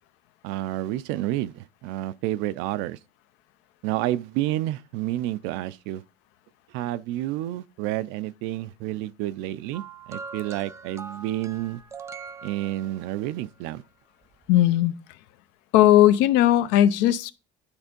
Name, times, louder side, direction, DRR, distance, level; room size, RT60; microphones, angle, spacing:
voice 1, 0.4-3.0 3.8-6.0 6.7-9.8 10.1-11.8 12.4-13.8, right 14 dB, 75° right, 0.5 m, -29 dB
sound 1, 9.7-13.3 14.3-14.5, right 5 dB, 15° right, 0.4 m, -41 dB
voice 2, 14.5-14.9 15.7-17.3, left 13 dB, 75° left, 0.7 m, -18 dB
9.9 x 3.4 x 5.2 m
cardioid pair, 160°, 19 cm